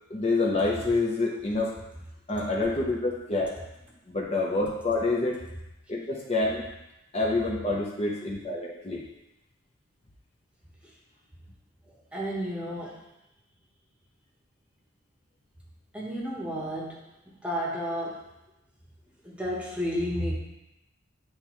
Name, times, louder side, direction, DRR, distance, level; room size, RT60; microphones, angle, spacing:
voice 1, 0.1-1.7 2.3-3.5 4.1-5.4 5.9-6.6 7.1-9.0, left 2 dB, 30° left, -3 dB, 0.8 m, -27 dB
voice 2, 12.1-13.0 15.9-17.0 17.3-18.2 19.2-20.3, equal, 5° right, -4 dB, 1.1 m, -31 dB
9.8 x 3.4 x 3.1 m, 0.93 s
head